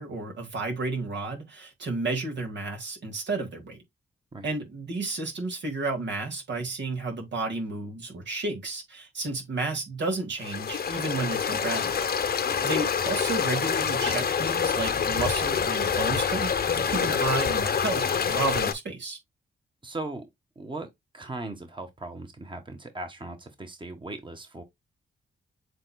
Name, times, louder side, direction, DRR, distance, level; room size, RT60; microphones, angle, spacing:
voice 1, 0.0-3.8 4.4-12.0 12.6-19.2, right 3 dB, 70° right, 2.1 m, -32 dB
sound 1, 10.4-18.7, left 6 dB, 55° left, 0.9 m, -26 dB
voice 2, 19.8-20.2 20.6-24.6, right 2 dB, 25° right, 1.3 m, -38 dB
7.5 x 3.0 x 2.3 m
cardioid pair, 60°, 19 cm